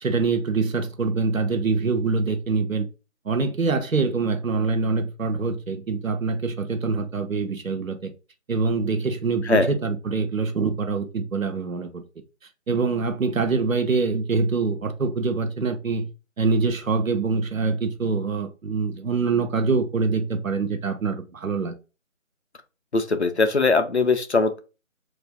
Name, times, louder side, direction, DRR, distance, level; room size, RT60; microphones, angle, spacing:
voice 1, 0.0-2.9 3.3-8.1 8.5-12.0 12.7-16.1 16.4-21.7, right 4 dB, 80° right, 0.7 m, -24 dB
voice 2, 22.9-24.6, left 3 dB, 55° left, 0.5 m, -21 dB
2.5 x 2.2 x 3.3 m
figure-of-eight pair, 165°, 40 cm